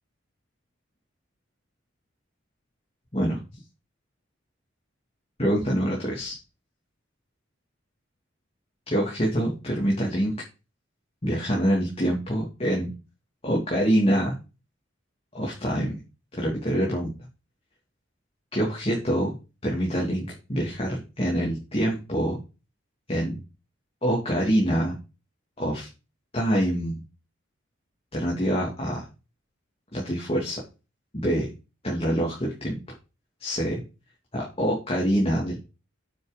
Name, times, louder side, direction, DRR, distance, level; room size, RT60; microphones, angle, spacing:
voice 1, 5.4-6.4 8.9-10.3 11.2-12.9 13.4-14.4 15.3-16.0 16.3-17.1 18.5-19.3 19.6-22.4 23.1-23.4 24.0-24.9 25.6-25.9 26.3-27.0 28.1-29.0 29.9-30.6 31.1-31.5 31.8-32.8 33.4-33.8 34.3-35.6, equal, 30° left, -2 dB, 2.9 m, -25 dB
9.3 x 6.5 x 5.3 m, 0.30 s
head